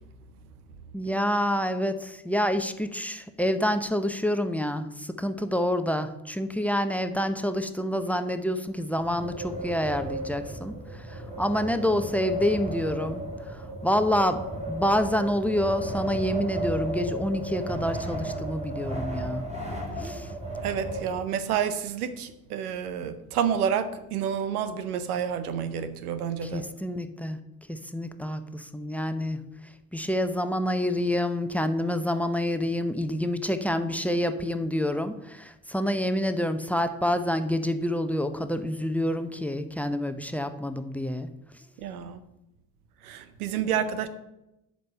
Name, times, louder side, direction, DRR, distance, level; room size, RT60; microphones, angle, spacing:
voice 1, 0.9-13.2 13.5-19.4 20.0-20.3 26.4-27.4 27.7-29.4 29.9-41.3, equal, 5° left, 10 dB, 0.8 m, -28 dB
Wind, 8.9-21.6, right 1 dB, 15° right, 3.3 m, -34 dB
voice 2, 20.6-26.7 41.8-42.2 43.0-44.1, right 8 dB, 80° right, 12 dB, 0.8 m, -29 dB
7.7 x 5.3 x 7.6 m, 0.90 s
hypercardioid pair, 50°, 44 cm